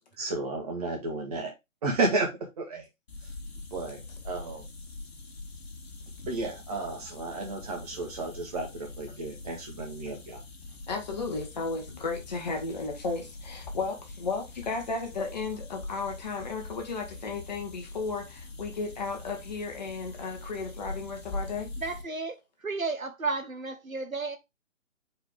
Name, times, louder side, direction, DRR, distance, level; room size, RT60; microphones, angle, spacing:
voice 1, 0.2-1.5 1.8-2.9 3.5-4.7 6.3-10.4, right 3 dB, 30° right, 1.9 m, -32 dB
sound 1, 3.1-22.0, left 2 dB, 50° left, 1.5 m, -43 dB
voice 2, 10.9-21.7, left 4 dB, 30° left, 1.3 m, -34 dB
voice 3, 21.8-24.4, right 3 dB, 85° right, 1.1 m, -33 dB
4.7 x 4.4 x 4.9 m
figure-of-eight pair, 145°, 40 cm